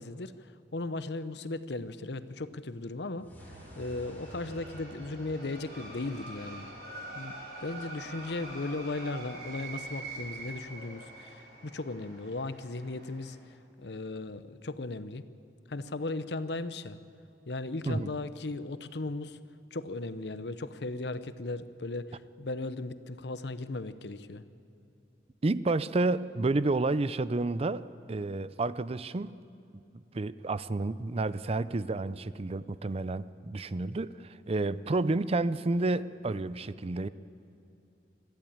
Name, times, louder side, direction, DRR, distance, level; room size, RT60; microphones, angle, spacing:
voice 1, 0.0-3.3 3.8-6.7 7.1-13.4 13.8-15.2 15.7-17.0 17.5-19.4 19.7-24.4, left 2 dB, 70° left, 14 dB, 0.8 m, -37 dB
sound 1, 3.2-6.3, equal, 10° left, 2.7 m, -51 dB
sound 2, 3.4-13.3, right 2 dB, 65° right, 6.7 m, -45 dB
voice 2, 25.4-29.4 30.1-37.1, right 2 dB, 35° right, 16 dB, 0.5 m, -30 dB
22.0 x 14.0 x 8.8 m, 2.8 s
head